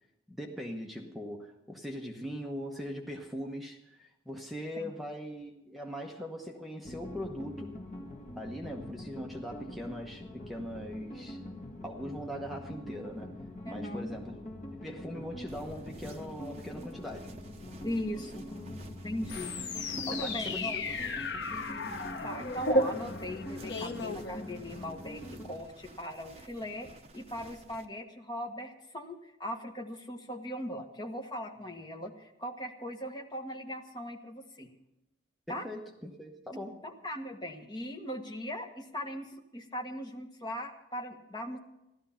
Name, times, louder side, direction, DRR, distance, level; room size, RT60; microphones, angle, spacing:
voice 1, 0.3-7.8 8.3-11.4 11.8-13.4 13.7-14.4 14.8-17.3 20.0-21.1 35.5-36.8, equal, ahead, 0 dB, 1.1 m, -41 dB
sound 1, 6.8-25.6, left 1 dB, 40° left, 1.6 m, -44 dB
voice 2, 13.6-14.1 17.8-18.5 19.0-20.8 22.2-26.9 27.1-34.7 35.5-35.6 36.8-41.6, equal, 25° left, 2 dB, 1.5 m, -39 dB
sound 2, 15.5-27.9, right 2 dB, 35° right, 1.0 m, -53 dB
sound 3, 19.3-25.0, left 2 dB, 70° left, 1.0 m, -34 dB
15.0 x 12.5 x 5.7 m, 0.89 s
head